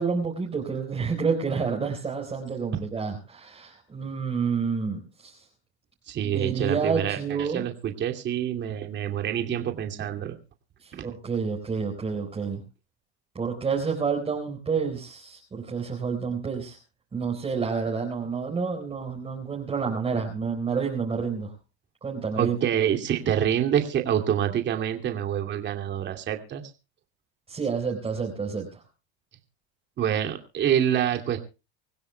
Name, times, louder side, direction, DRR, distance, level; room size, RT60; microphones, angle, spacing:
voice 1, 0.0-5.4 6.2-7.7 10.8-12.6 13.3-16.8 17.1-21.5 22.0-22.6 27.5-28.8, right 5 dB, 20° right, -1 dB, 4.2 m, -29 dB
voice 2, 6.1-10.4 10.9-11.1 22.4-26.6 30.0-31.4, right 10 dB, 35° right, 4 dB, 2.6 m, -26 dB
25.5 x 16.0 x 2.2 m, 0.31 s
supercardioid pair, 125°, 30 cm